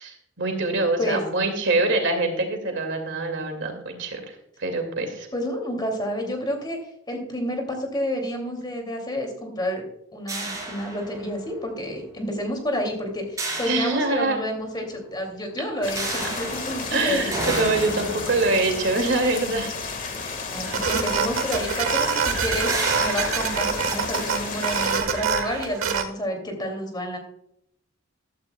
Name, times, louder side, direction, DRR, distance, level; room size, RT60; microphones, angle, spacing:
voice 1, 0.0-5.3 13.7-14.4 16.9-19.7, right 2 dB, 60° right, 5 dB, 2.3 m, -24 dB
voice 2, 5.3-6.8 7.1-9.9 10.1-17.3 20.5-22.7 23.0-27.2, equal, 20° left, 3 dB, 2.6 m, -29 dB
sound 1, 10.3-11.6 13.4-14.7 16.0-20.4 21.3-21.4 21.8-22.0 22.7-24.7, right 2 dB, 15° right, 4.3 m, -33 dB
sound 2, 15.8-25.0, left 4 dB, 40° left, 1.7 m, -33 dB
sound 3, 20.6-26.0, right 6 dB, 80° right, 1.5 m, -26 dB
15.0 x 12.5 x 2.3 m, 0.74 s
head